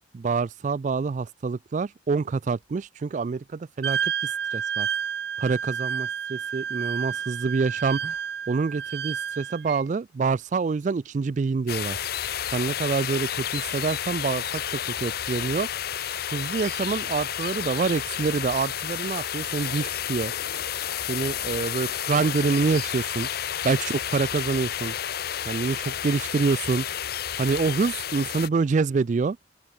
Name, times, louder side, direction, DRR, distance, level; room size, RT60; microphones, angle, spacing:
voice 1, 0.1-4.9 5.4-8.2 8.5-12.0 12.5-15.7 16.3-20.3 21.1-23.3 23.6-24.9 25.4-26.9 27.4-29.4, right 4 dB, 40° right, 0.3 m, -26 dB
Wind instrument woodwind instrument, 3.8-9.8, right 7 dB, 55° right, 0.9 m, -30 dB
sound 1, 11.7-28.5, left 10 dB, 55° left, 0.7 m, -31 dB
open air
head